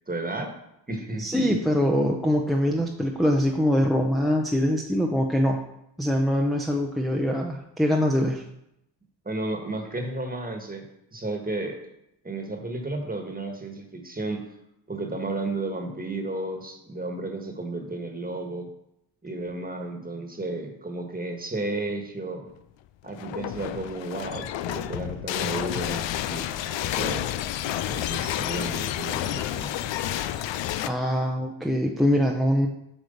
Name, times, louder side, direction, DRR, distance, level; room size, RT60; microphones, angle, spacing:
voice 1, 0.1-0.5 0.9-1.6 9.2-10.8 11.1-11.8 12.2-14.4 14.9-18.7 19.2-22.5 23.0-26.5 26.8-27.3 27.9-29.9, right 2 dB, 20° right, 3 dB, 1.5 m, -33 dB
voice 2, 1.2-5.7 6.0-8.4 30.9-32.7, equal, ahead, 2 dB, 0.7 m, -23 dB
sound 1, 23.1-30.9, left 12 dB, 70° left, 0.6 m, -30 dB
7.9 x 3.2 x 5.3 m, 0.82 s
supercardioid pair, 60°, 47 cm